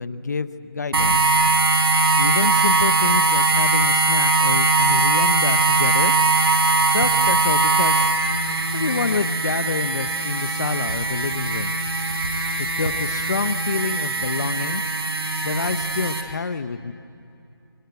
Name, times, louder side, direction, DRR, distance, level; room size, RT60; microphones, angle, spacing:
voice 1, 0.0-1.3 2.2-6.1 6.9-8.0 8.7-11.7 12.6-14.8 15.4-16.9, left 4 dB, 45° left, 13 dB, 0.9 m, -27 dB
sound 1, 0.9-16.2, right 3 dB, 75° right, 4.5 m, -20 dB
27.0 x 23.5 x 9.5 m, 2.7 s
figure-of-eight pair, 170°, 13 cm